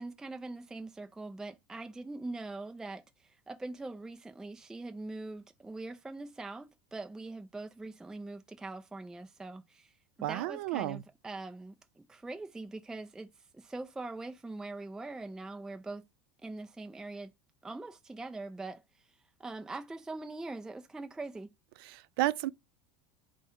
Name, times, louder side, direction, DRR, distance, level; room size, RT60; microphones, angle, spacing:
voice 1, 0.0-9.9 10.2-16.0 16.4-17.3 17.6-18.8 19.4-21.5, right 2 dB, 5° right, 0.4 m, -42 dB
voice 2, 10.2-11.0 21.9-22.5, right 16 dB, 75° right, 0.4 m, -32 dB
4.8 x 2.2 x 4.2 m
supercardioid pair, 145°, 12 cm